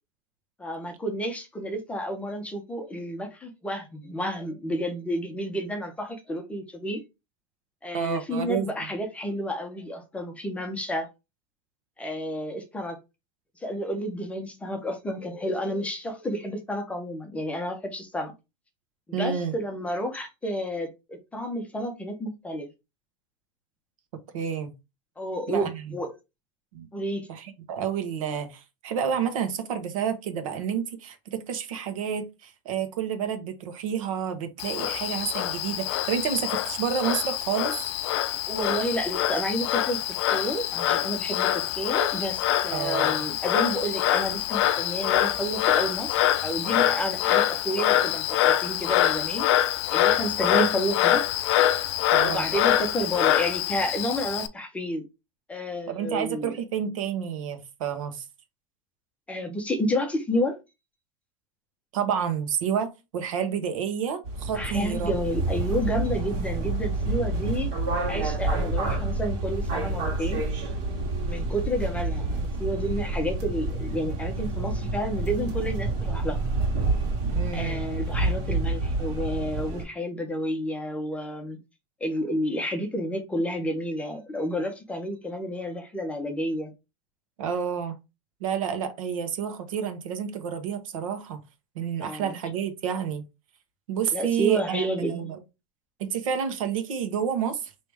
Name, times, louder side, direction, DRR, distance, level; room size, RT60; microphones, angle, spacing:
voice 1, 0.6-7.0 7.8-11.1 12.0-13.0 13.6-18.3 19.2-22.7 25.2-26.1 26.9-27.3 38.5-49.5 49.9-51.3 52.2-55.1 55.5-56.6 59.3-60.6 64.5-67.7 68.1-70.4 71.3-76.4 77.5-81.6 82.0-86.7 92.0-92.4 94.1-95.2, equal, 5° left, 0.6 m, -30 dB
voice 2, 7.9-8.7 19.1-19.5 24.3-24.7 25.5-26.0 26.7-26.9 27.3-37.9 42.7-43.2 50.5-50.8 52.1-52.4 55.9-58.2 61.9-65.1 77.3-77.8 87.4-87.9 88.4-91.4 91.7-93.2 93.9-95.4 96.0-97.7, right 8 dB, 80° right, 1.3 m, -29 dB
Frog, 34.6-54.5, left 12 dB, 55° left, 0.5 m, -25 dB
sound 1, 64.2-79.8, right 2 dB, 50° right, 1.8 m, -28 dB
4.7 x 3.0 x 3.4 m
supercardioid pair, 160°, 17 cm